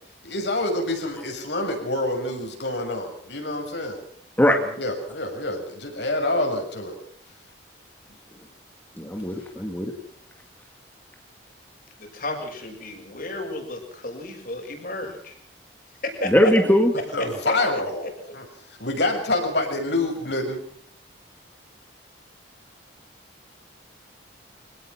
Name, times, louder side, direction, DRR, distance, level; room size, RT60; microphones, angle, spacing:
voice 1, 0.2-4.0 4.8-7.0 17.1-18.4 18.8-20.6, left 2 dB, 65° left, 3 dB, 6.3 m, -27 dB
voice 2, 9.0-9.9 16.2-16.9, equal, 10° left, 4 dB, 1.8 m, -19 dB
voice 3, 12.0-15.3 16.0-16.5 17.2-17.8, left 1 dB, 45° left, 3 dB, 6.2 m, -32 dB
25.5 x 17.5 x 6.1 m, 0.62 s
head